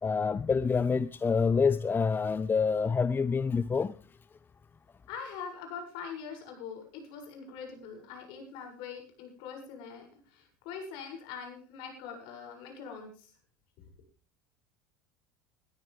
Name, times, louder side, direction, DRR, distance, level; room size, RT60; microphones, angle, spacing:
voice 1, 0.0-3.9, left 5 dB, 20° left, 0.7 m, -27 dB
voice 2, 5.1-13.3, left 6 dB, 60° left, 7.3 m, -43 dB
20.5 x 13.0 x 3.6 m
hypercardioid pair, 75°, 9 cm